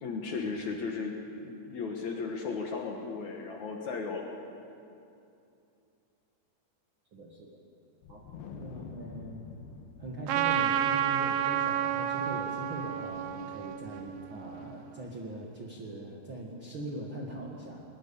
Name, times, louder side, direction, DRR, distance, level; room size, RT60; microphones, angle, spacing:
voice 1, 0.0-1.1 1.4-4.3, left 4 dB, 60° left, 1 dB, 2.3 m, -35 dB
voice 2, 7.1-7.5 8.1-8.2 8.5-9.5 10.0-17.8, right 1 dB, 45° right, -2 dB, 1.7 m, -41 dB
Wind, 8.0-14.5, left 5 dB, 80° left, 3.1 m, -49 dB
Trumpet, 10.3-14.9, right 11 dB, 75° right, 2.2 m, -30 dB
20.5 x 20.0 x 7.0 m, 2.7 s
omnidirectional pair, 4.6 m